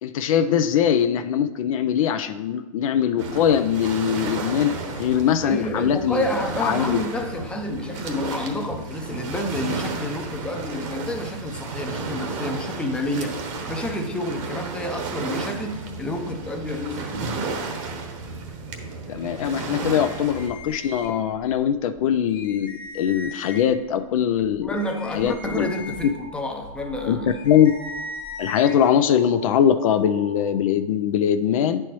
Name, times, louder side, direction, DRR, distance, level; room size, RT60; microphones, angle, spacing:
voice 1, 0.0-6.2 6.6-7.0 19.1-24.8 25.1-25.7 27.1-27.2 27.4-27.7 28.4-31.8, left 9 dB, 65° left, 0.5 m, -21 dB
Waves surf, 3.2-20.5, right 3 dB, 60° right, 1.1 m, -33 dB
voice 2, 5.4-17.4 24.6-27.4, left 1 dB, 5° left, 0.6 m, -29 dB
sound 1, 20.0-21.6 21.9-22.0 22.3-23.8 24.4-28.7, left 2 dB, 25° left, 1.3 m, -39 dB
sound 2, 25.6-30.4, equal, 80° right, 1.8 m, -44 dB
9.8 x 4.4 x 3.1 m
hypercardioid pair, 120°, 19 cm